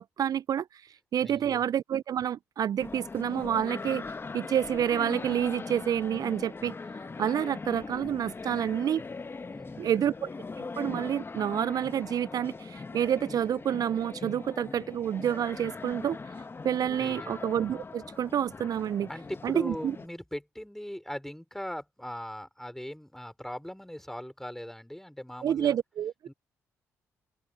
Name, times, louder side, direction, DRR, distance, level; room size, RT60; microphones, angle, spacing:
voice 1, 0.0-4.0 4.3-6.7 7.2-9.0 9.8-10.3 10.8-16.2 16.6-19.1 19.4-19.9 25.4-26.3, right 9 dB, 55° right, 0.6 m, -29 dB
voice 2, 1.2-1.6 9.5-10.1 17.0-17.4 19.1-25.7 26.3-26.4, equal, 5° left, 5.1 m, -40 dB
sound 1, 2.8-20.1, left 4 dB, 30° left, 1.4 m, -40 dB
open air
hypercardioid pair, 45°, 8 cm